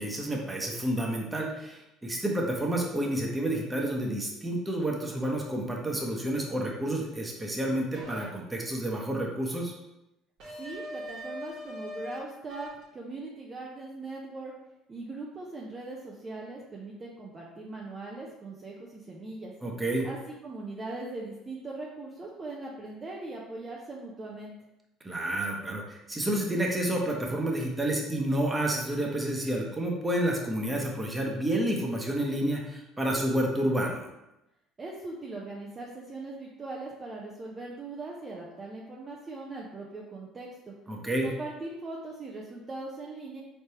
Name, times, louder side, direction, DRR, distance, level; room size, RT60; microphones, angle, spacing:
voice 1, 0.0-9.7 19.6-20.1 25.0-34.1 40.9-41.3, right 1 dB, 15° right, -1 dB, 1.1 m, -29 dB
sound 1, 7.9-8.3 10.4-12.2 12.5-12.8, equal, 60° right, 1.3 m, -40 dB
voice 2, 10.6-14.5 14.9-19.5 20.0-24.5 34.8-40.7 41.2-43.4, right 2 dB, 30° right, -3 dB, 0.7 m, -40 dB
4.3 x 3.3 x 2.9 m, 0.92 s
hypercardioid pair, 70°, 0 cm